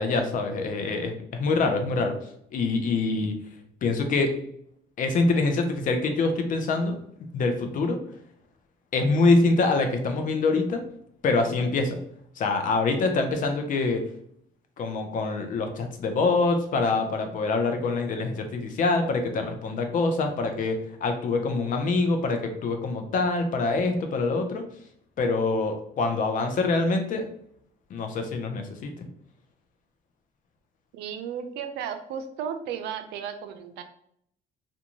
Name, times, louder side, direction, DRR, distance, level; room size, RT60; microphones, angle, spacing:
voice 1, 0.0-2.1 2.5-3.3 3.8-4.3 5.0-7.0 7.3-8.0 8.9-10.8 11.2-12.0 12.4-14.0 14.8-24.6 25.2-27.2 27.9-29.1, left 3 dB, 50° left, 5 dB, 0.5 m, -25 dB
voice 2, 30.9-33.8, right 8 dB, 80° right, 8 dB, 0.4 m, -34 dB
2.5 x 2.2 x 2.9 m, 0.68 s
cardioid pair, 110°, 17 cm